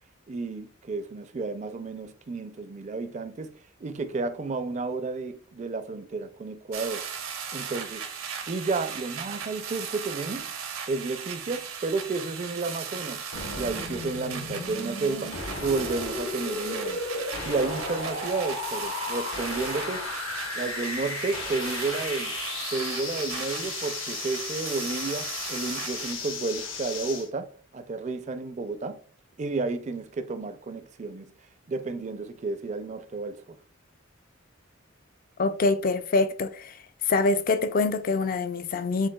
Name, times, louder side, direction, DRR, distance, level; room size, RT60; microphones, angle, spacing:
voice 1, 0.3-7.1 7.5-8.1 8.5-10.5 10.9-13.2 13.5-17.0 17.5-20.1 20.5-22.3 22.7-29.0 29.4-31.3 31.7-33.6, right 3 dB, 35° right, 0.4 m, -32 dB
sound 1, 6.7-26.1, right 7 dB, 90° right, 0.9 m, -37 dB
sound 2, 13.3-27.3, left 3 dB, 70° left, 1.1 m, -35 dB
voice 2, 35.4-36.8 37.1-39.1, left 3 dB, 45° left, 0.4 m, -25 dB
7.1 x 2.7 x 2.3 m
head